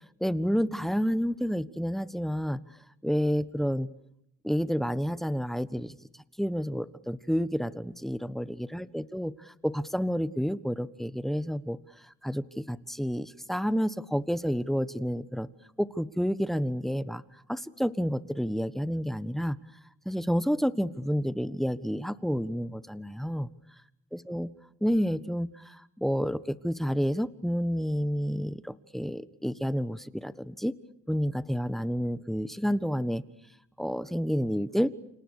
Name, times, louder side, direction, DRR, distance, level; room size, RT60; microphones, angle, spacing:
voice 1, 0.2-2.6 3.0-3.9 4.4-6.0 6.4-11.8 12.2-15.5 15.8-17.2 17.5-19.6 20.0-23.5 24.1-24.5 24.8-30.7 31.1-33.2 33.8-34.9, equal, ahead, 16 dB, 1.4 m, -29 dB
29.0 x 27.0 x 6.7 m, 0.78 s
cardioid pair, 90°, 30 cm